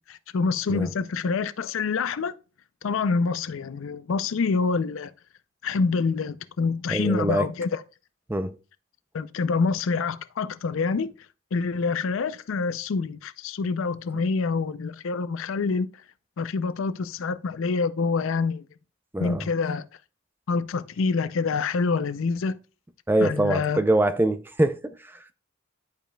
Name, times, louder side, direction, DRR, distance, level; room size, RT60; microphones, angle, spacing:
voice 1, 0.1-2.3 2.8-5.1 5.6-7.8 9.1-11.1 11.5-15.9 16.4-18.7 19.2-19.9 20.5-22.6 23.2-23.8, left 4 dB, 70° left, 0.4 m, -26 dB
voice 2, 6.9-7.5 8.3-8.5 19.1-19.5 23.1-25.1, right 2 dB, 10° right, 0.3 m, -24 dB
11.0 x 5.1 x 2.2 m
head